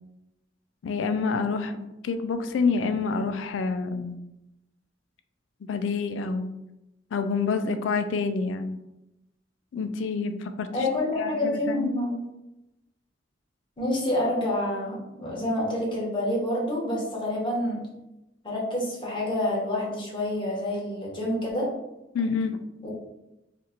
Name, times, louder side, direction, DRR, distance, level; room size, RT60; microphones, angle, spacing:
voice 1, 0.8-4.2 5.6-6.5 7.1-8.8 9.7-10.9 11.2-11.9 22.1-22.6, left 4 dB, 85° left, 9 dB, 0.3 m, -28 dB
voice 2, 10.7-12.2 13.8-17.9 18.4-21.7 22.8-22.9, left 1 dB, 25° left, -3 dB, 1.0 m, -28 dB
2.8 x 2.5 x 4.2 m, 0.93 s
head